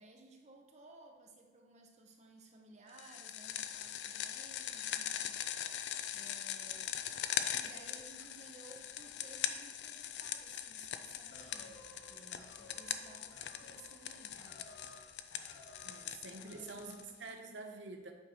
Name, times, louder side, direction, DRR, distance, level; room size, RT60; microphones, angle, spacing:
voice 1, 0.0-5.7 6.1-6.9 7.6-14.7 16.4-17.0, right 2 dB, 40° right, 2 dB, 0.9 m, -58 dB
sound 1, 3.0-17.3, left 10 dB, 65° left, 0.4 m, -41 dB
sound 2, 11.3-15.0 15.3-16.0 16.3-17.0, left 1 dB, 90° left, 1.3 m, -57 dB
voice 2, 15.8-18.1, right 3 dB, 85° right, 4 dB, 0.8 m, -47 dB
8.5 x 3.1 x 5.8 m, 1.3 s
head